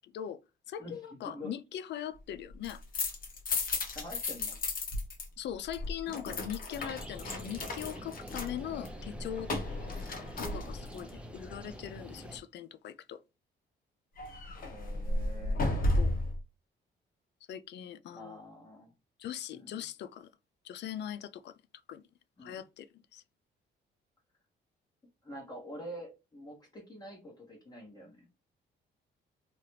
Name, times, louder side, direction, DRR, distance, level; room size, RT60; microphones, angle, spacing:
voice 1, 0.0-0.4 0.7-2.8 5.4-9.5 10.4-13.2 16.0-16.1 17.5-18.4 19.2-20.3 20.6-21.5 21.9-22.0 22.4-23.2, left 10 dB, 60° left, 0.4 m, -41 dB
voice 2, 0.8-1.5 3.9-4.6 14.7-15.6 18.1-18.9 19.5-19.8 22.4-22.6 25.2-28.3, equal, 20° left, 1.3 m, -46 dB
sound 1, 2.5-5.3 5.5-11.1 14.2-16.4, left 2 dB, 45° left, 0.9 m, -34 dB
sound 2, 6.7-12.4, equal, 5° right, 0.6 m, -46 dB
2.9 x 2.4 x 3.1 m
cardioid pair, 90°, 20 cm